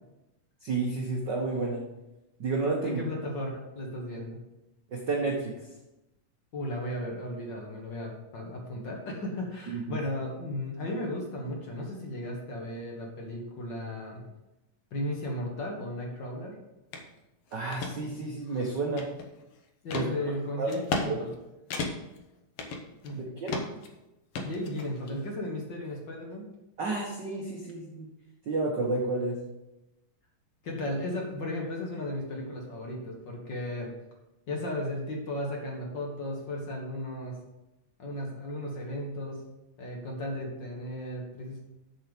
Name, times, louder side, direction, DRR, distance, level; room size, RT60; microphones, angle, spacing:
voice 1, 0.6-1.8 2.4-3.0 4.9-5.5 9.7-10.0 17.5-19.1 19.9-20.1 20.6-20.7 21.1-21.3 23.1-23.6 26.8-28.1 28.4-29.4, right 3 dB, 90° right, -1 dB, 0.9 m, -31 dB
voice 2, 2.8-4.4 6.5-14.2 14.9-16.5 19.8-21.3 23.0-23.3 24.4-26.4 30.6-33.9 34.5-37.3 38.0-39.4 39.8-41.6, left 1 dB, 50° left, 0 dB, 1.5 m, -35 dB
sound 1, 16.9-17.1 17.5-17.9 18.5-19.4 19.9-20.1 20.7-21.1 21.3-21.4 21.7-22.2 22.6-23.2 23.5-23.9 24.3-25.1, left 3 dB, 65° left, 1.6 m, -33 dB
7.5 x 7.2 x 5.1 m, 0.96 s
omnidirectional pair, 3.9 m